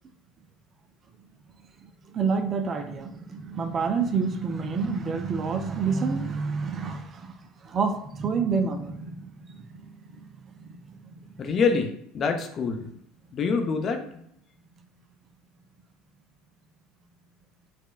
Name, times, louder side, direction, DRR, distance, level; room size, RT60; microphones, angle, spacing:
voice 1, 1.8-7.3 7.6-11.3, right 5 dB, 40° right, 0.4 m, -29 dB
voice 2, 11.4-12.9 13.3-14.0, left 5 dB, 40° left, 0.5 m, -26 dB
4.1 x 2.2 x 2.3 m
hypercardioid pair, 65°, 0 cm